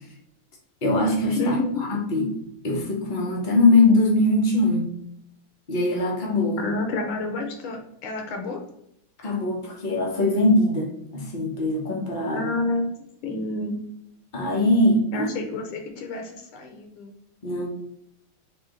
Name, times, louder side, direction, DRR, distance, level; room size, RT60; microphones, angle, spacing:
voice 1, 0.8-2.3 2.6-4.9 5.7-6.6 9.2-12.5 14.3-15.5 17.4-17.7, left 2 dB, 60° left, -1 dB, 0.5 m, -22 dB
voice 2, 1.4-1.8 6.6-8.6 12.3-12.8 13.2-13.8 15.1-17.1, left 2 dB, 75° left, 4 dB, 1.6 m, -29 dB
4.4 x 3.0 x 3.7 m, 0.76 s
omnidirectional pair, 2.4 m